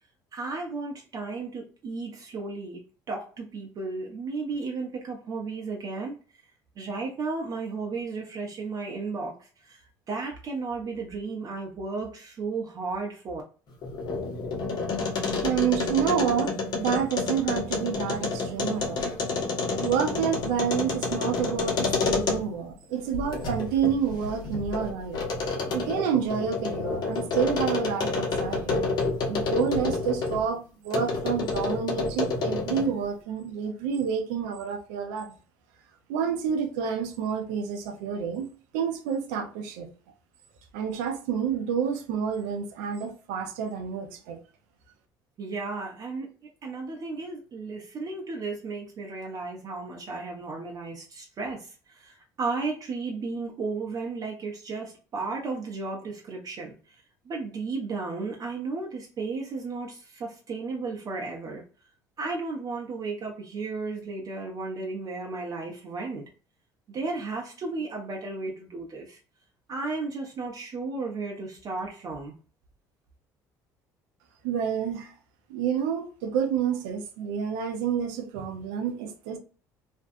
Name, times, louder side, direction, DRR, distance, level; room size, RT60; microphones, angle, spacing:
voice 1, 0.3-2.8 3.1-6.4 6.8-9.8 10.1-13.4 45.4-46.3 46.6-61.6 62.2-66.3 66.9-69.2 69.7-72.3, right 3 dB, 45° right, 0.7 m, -34 dB
sound 1, 13.7-22.7 23.1-30.4 30.9-33.0, left 3 dB, 55° left, 0.8 m, -29 dB
voice 2, 15.4-19.1 19.8-25.2 25.7-28.8 29.3-35.4 36.1-39.9 40.7-44.4 74.4-75.1 75.5-79.4, right 7 dB, 85° right, 0.6 m, -29 dB
2.5 x 2.2 x 2.5 m
supercardioid pair, 80°, 9 cm